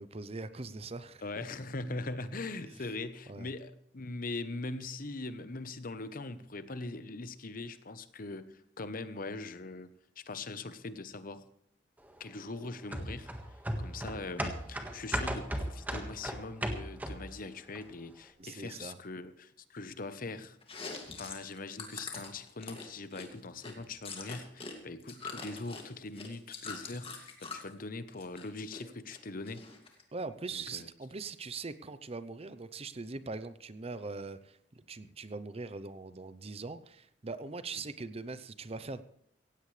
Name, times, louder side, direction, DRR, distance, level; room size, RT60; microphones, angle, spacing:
voice 1, 0.0-1.4 3.3-3.5 18.4-19.0 30.1-39.0, right 3 dB, 35° right, 13 dB, 0.7 m, -41 dB
voice 2, 1.2-9.9 10.2-11.4 12.2-13.3 13.8-20.6 21.2-29.6 30.5-30.9 37.7-37.8, left 3 dB, 50° left, 12 dB, 0.9 m, -41 dB
sound 1, 12.9-17.4 17.7-17.8, right 1 dB, 10° right, 1.6 m, -36 dB
Chewing mastication, 20.6-24.7 25.0-27.7 28.1-28.8 29.1-30.0, left 4 dB, 30° left, 2.3 m, -44 dB
17.0 x 16.0 x 3.3 m, 0.68 s
head